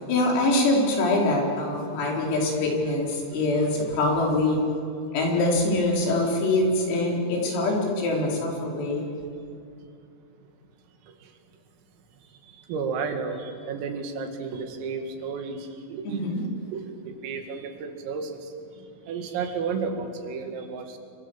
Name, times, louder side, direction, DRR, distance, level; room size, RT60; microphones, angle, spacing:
voice 1, 0.1-4.6 5.1-9.1 16.1-16.4, left 2 dB, 85° left, -1 dB, 7.1 m, -24 dB
voice 2, 12.7-16.2 16.7-18.5 19.1-21.0, right 5 dB, 85° right, 5 dB, 4.9 m, -32 dB
28.0 x 24.0 x 7.3 m, 2.5 s
omnidirectional pair, 5.9 m